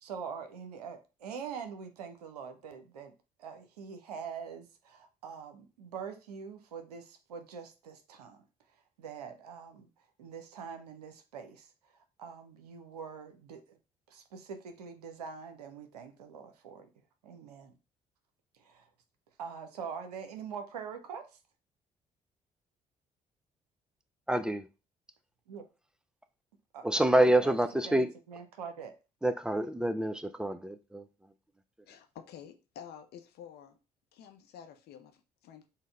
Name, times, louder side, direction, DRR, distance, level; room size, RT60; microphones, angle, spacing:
voice 1, 0.0-3.1 3.4-8.4 9.0-9.9 10.2-13.8 14.1-16.9 17.2-17.7 18.6-18.9 19.4-21.4 25.5-25.6 26.7-27.5 27.9-29.0, right 6 dB, 80° right, 0.5 m, -44 dB
voice 2, 24.3-24.7 26.8-28.1 29.2-31.1, right 1 dB, 5° right, 0.4 m, -27 dB
voice 3, 31.9-33.8 34.1-35.7, left 8 dB, 55° left, 0.6 m, -50 dB
4.0 x 2.0 x 3.6 m
figure-of-eight pair, 45°, 20 cm